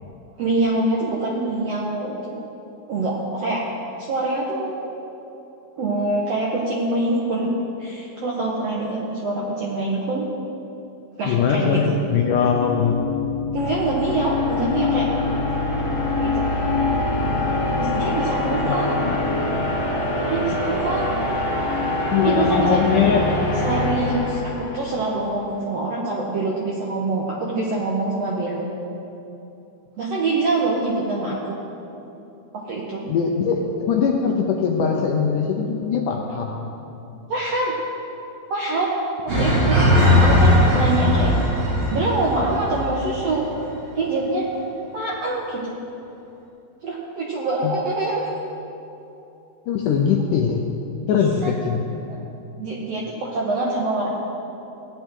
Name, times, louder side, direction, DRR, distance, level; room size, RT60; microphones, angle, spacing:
voice 1, 0.4-2.4 2.9-3.6 4.1-4.9 5.8-7.5 7.8-10.3 11.2-11.8 13.5-15.1 16.2-16.3 17.8-18.9 20.3-21.1 22.2-22.8 23.6-28.7 30.0-31.6 32.6-33.0 37.3-37.7 38.5-38.9 39.4-39.8 40.2-41.3 41.9-43.5 43.9-44.5 44.9-45.7 46.8-48.3 51.4-51.5 52.1-52.2 52.6-54.1, right 2 dB, 70° right, -4 dB, 1.5 m, -25 dB
voice 2, 11.3-13.0 18.7-19.2 22.1-23.2 33.1-36.7 47.6-47.7 49.7-50.6 51.1-51.8, left 6 dB, 75° left, 1 dB, 1.9 m, -21 dB
sound 1, 12.0-25.1, left 2 dB, 50° left, 2.4 m, -24 dB
sound 2, 39.3-43.2 43.5-43.6, left 1 dB, 45° right, 4.0 m, -18 dB
17.0 x 10.0 x 3.7 m, 2.8 s
omnidirectional pair, 4.4 m